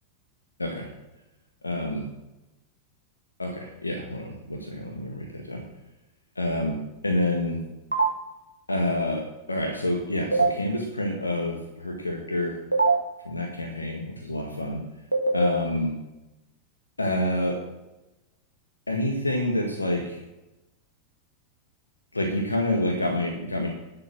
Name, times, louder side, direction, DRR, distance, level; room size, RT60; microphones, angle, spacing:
voice 1, 1.6-2.0 3.4-5.6 6.4-6.8 7.0-7.6 8.7-9.2 9.5-12.6 13.3-14.8 15.3-15.9 17.0-17.6 18.9-20.2 22.1-23.7, left 1 dB, 80° left, 1 dB, 1.7 m, -27 dB
sound 1, 7.9-8.1 10.3-10.5 12.7-12.9 15.1-15.5, right 3 dB, 85° right, 1.5 m, -20 dB
11.0 x 7.8 x 6.1 m, 0.98 s
figure-of-eight pair, 90°, 0 cm